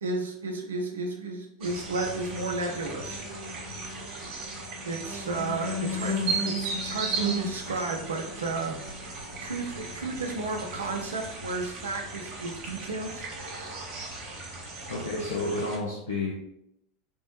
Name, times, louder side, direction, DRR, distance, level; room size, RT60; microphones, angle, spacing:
voice 1, 0.0-3.2 4.8-8.8 9.4-13.3, right 3 dB, 80° right, 3 dB, 0.5 m, -32 dB
sound 1, 1.6-15.8, right 1 dB, 50° right, 0.9 m, -35 dB
voice 2, 14.9-16.3, left 2 dB, 85° left, -3 dB, 0.5 m, -30 dB
3.4 x 2.1 x 2.9 m, 0.76 s
hypercardioid pair, 85°, 0 cm